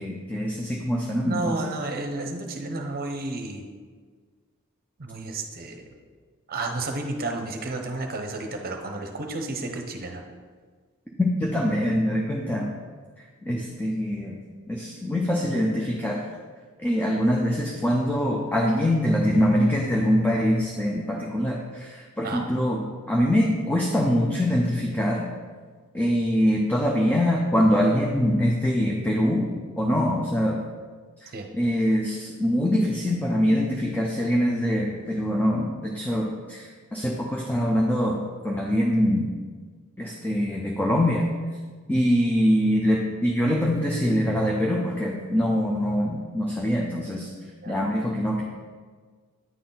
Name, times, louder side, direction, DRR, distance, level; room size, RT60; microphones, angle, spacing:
voice 1, 0.0-1.5 11.2-12.7 13.4-14.4 14.7-16.2 16.8-22.8 23.1-25.2 25.9-29.5 29.8-30.6 31.2-38.2 38.4-39.3 40.0-41.2 41.9-47.3 47.7-48.4, equal, 10° left, -2 dB, 0.6 m, -24 dB
voice 2, 1.2-3.7 5.0-5.9 6.5-10.2 13.5-13.6 22.2-22.4 31.3-31.5 47.6-47.8, right 2 dB, 45° right, 4 dB, 0.8 m, -32 dB
9.3 x 4.1 x 4.0 m, 1.5 s
head